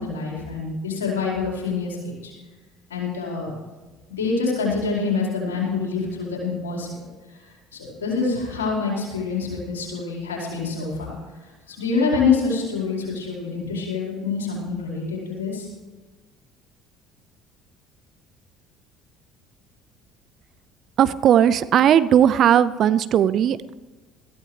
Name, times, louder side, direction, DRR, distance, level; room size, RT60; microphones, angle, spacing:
voice 1, 0.0-2.3 2.9-3.6 4.1-7.1 7.7-11.2 11.7-15.7, left 4 dB, 80° left, -2 dB, 4.6 m, -26 dB
voice 2, 21.0-23.7, right 9 dB, 50° right, 16 dB, 0.6 m, -17 dB
20.5 x 15.0 x 3.4 m, 1.2 s
figure-of-eight pair, 60°, 0 cm